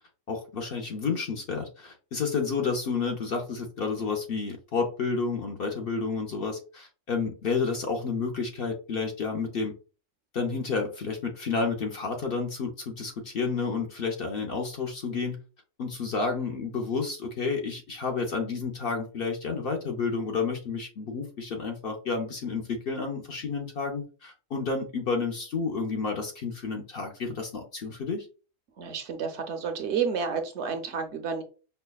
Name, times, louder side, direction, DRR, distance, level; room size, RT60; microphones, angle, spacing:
voice 1, 0.3-9.7 10.3-15.4 15.8-28.3, left 4 dB, 55° left, 2 dB, 0.7 m, -30 dB
voice 2, 28.8-31.4, right 6 dB, 65° right, 6 dB, 0.8 m, -30 dB
5.5 x 2.1 x 2.3 m, 0.35 s
omnidirectional pair, 1.4 m